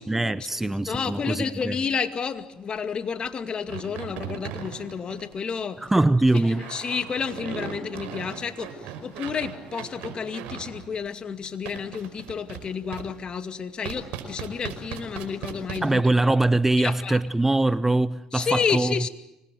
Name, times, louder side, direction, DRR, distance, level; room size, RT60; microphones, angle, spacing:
voice 1, 0.0-1.8 5.8-6.6 15.8-18.9, right 2 dB, 10° right, 0.8 m, -22 dB
voice 2, 0.6-5.8 6.3-16.0 16.8-17.2 18.3-19.1, left 6 dB, 40° left, 2.3 m, -30 dB
sound 1, 3.7-5.6 6.3-10.9 11.7-12.6 12.9-13.1 13.8-15.8, right 9 dB, 75° right, 5.0 m, -37 dB
25.5 x 20.5 x 7.6 m
supercardioid pair, 75°, 2 cm